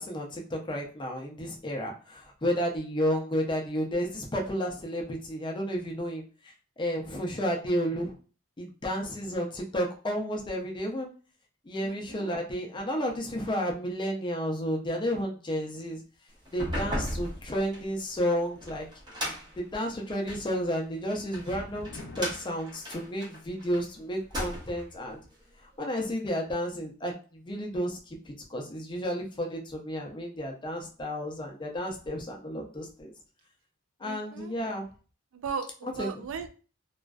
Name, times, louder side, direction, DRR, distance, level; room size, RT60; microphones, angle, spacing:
voice 1, 0.0-6.5 6.8-8.1 8.6-11.1 11.7-16.0 16.5-18.9 19.6-25.2 25.8-33.1 34.0-34.8 35.8-36.2, equal, 25° left, 1 dB, 0.5 m, -32 dB
voice 2, 11.8-12.4 34.0-34.5 35.3-36.5, right 6 dB, 75° right, 8 dB, 0.3 m, -37 dB
sound 1, 16.4-20.5 21.1-23.8 24.2-24.9, equal, 20° right, 0.7 m, -36 dB
sound 2, 18.1-19.6 19.9-20.3 20.6-22.3, left 2 dB, 80° left, 0.5 m, -49 dB
2.4 x 2.2 x 2.3 m, 0.37 s
head